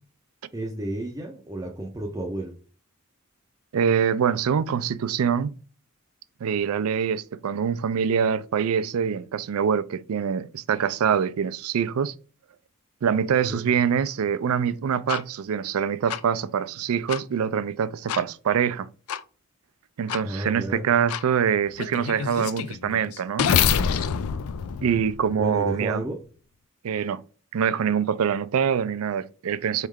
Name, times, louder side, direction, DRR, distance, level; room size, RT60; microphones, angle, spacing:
voice 1, 0.5-2.6 13.4-13.6 20.2-20.9 25.4-26.2, right 1 dB, 15° right, 0.5 m, -31 dB
voice 2, 3.7-5.6 6.4-12.1 13.0-18.9 20.0-23.5 24.8-26.0 26.8-27.2 27.5-29.9, right 7 dB, 85° right, 0.4 m, -24 dB
sound 1, 15.1-15.2 16.1-16.2 17.1-17.2 18.1-18.2 19.1-19.2 20.1-20.2 21.1-21.2 21.8-25.7, left 7 dB, 90° left, 0.4 m, -26 dB
4.6 x 3.2 x 3.6 m
head